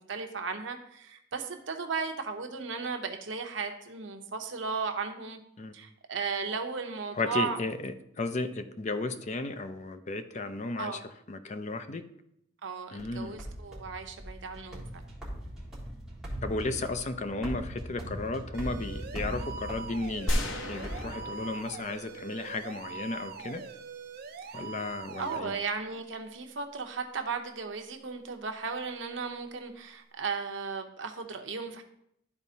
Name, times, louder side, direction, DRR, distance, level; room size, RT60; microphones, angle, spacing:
voice 1, 0.1-5.4 5.7-7.6 10.8-11.0 12.6-15.0 24.5-24.6 25.2-31.8, right 5 dB, 80° right, 5 dB, 0.8 m, -35 dB
voice 2, 7.1-11.0 11.3-12.0 12.9-13.4 16.4-23.6 24.5-25.5, left 3 dB, 40° left, 9 dB, 0.5 m, -34 dB
sound 1, 13.0-21.8, equal, 5° right, 1.7 m, -40 dB
sound 2, 18.5-25.4, right 5 dB, 50° right, 0.5 m, -43 dB
sound 3, 20.3-23.2, left 1 dB, 90° left, 0.8 m, -34 dB
12.0 x 4.2 x 2.8 m, 0.75 s
head